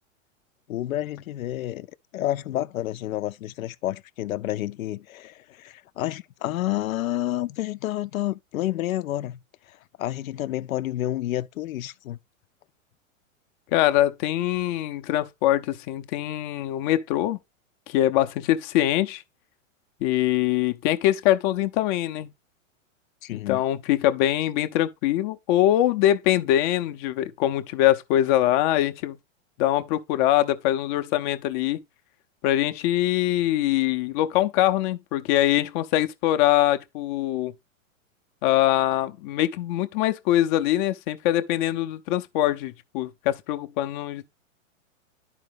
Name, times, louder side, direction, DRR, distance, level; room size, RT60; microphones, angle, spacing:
voice 1, 0.7-1.9 2.1-12.2 23.2-23.6, left 14 dB, 80° left, 0.7 m, -30 dB
voice 2, 13.7-17.4 17.9-19.2 20.0-22.3 23.3-29.2 29.6-31.8 32.4-37.5 38.4-44.2, left 13 dB, 35° left, 0.6 m, -23 dB
11.0 x 4.9 x 3.4 m
hypercardioid pair, 140°, 40 cm